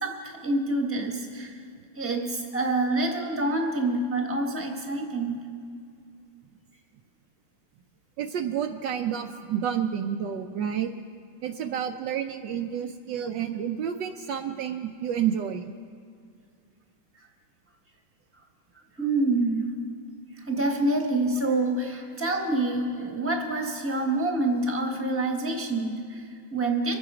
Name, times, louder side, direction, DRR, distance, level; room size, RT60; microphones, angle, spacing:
voice 1, 0.0-1.6 1.9-5.4 17.2-17.3 19.0-19.7 20.4-27.0, right 2 dB, 10° right, 2 dB, 1.1 m, -27 dB
voice 2, 8.2-10.9 11.4-15.7, right 9 dB, 75° right, 5 dB, 1.2 m, -30 dB
24.0 x 8.8 x 5.0 m, 2.2 s
omnidirectional pair, 2.1 m